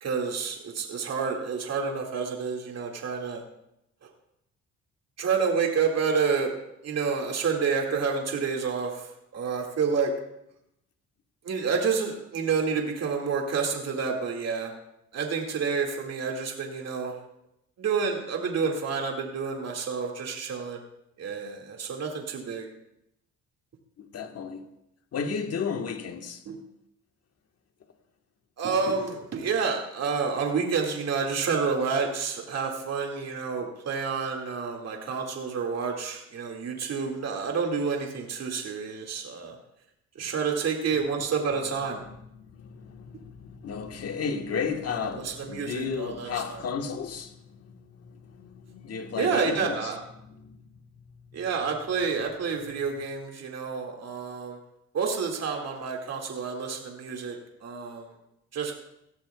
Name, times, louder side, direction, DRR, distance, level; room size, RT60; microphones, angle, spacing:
voice 1, 0.0-3.4 5.2-6.5 6.8-10.1 11.4-14.7 15.1-17.2 17.8-20.8 21.2-22.7 26.5-26.6 28.6-39.6 40.2-42.0 44.9-46.6 49.2-50.0 51.3-54.6 54.9-58.1 58.5-58.7, right 5 dB, 55° right, 2.1 m, -29 dB
voice 2, 24.0-24.6 25.1-26.4 42.1-49.9 50.3-50.6, left 6 dB, 55° left, 1.4 m, -34 dB
18.0 x 12.5 x 2.3 m
cardioid pair, 90°, 30 cm